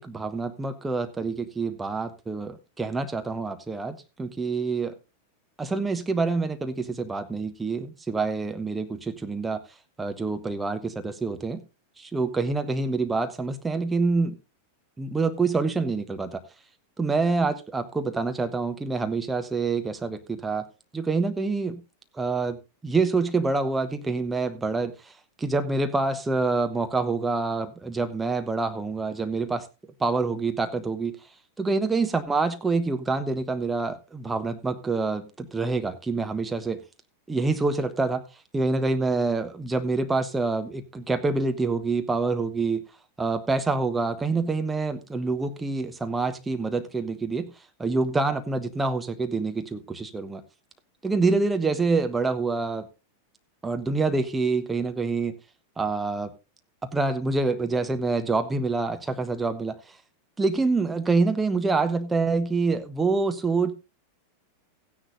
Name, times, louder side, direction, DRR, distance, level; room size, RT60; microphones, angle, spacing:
voice 1, 0.0-4.9 5.6-9.6 10.0-11.6 12.0-14.4 15.0-16.4 17.0-20.7 20.9-21.8 22.1-25.1 25.4-29.7 30.0-31.2 31.6-36.8 37.3-38.2 38.5-42.8 43.2-47.5 47.8-50.4 51.0-52.9 53.6-55.4 55.8-56.3 56.8-60.0 60.4-63.7, right 3 dB, 10° right, 1.0 m, -26 dB
16.0 x 10.0 x 2.6 m
figure-of-eight pair, 90°, 0 cm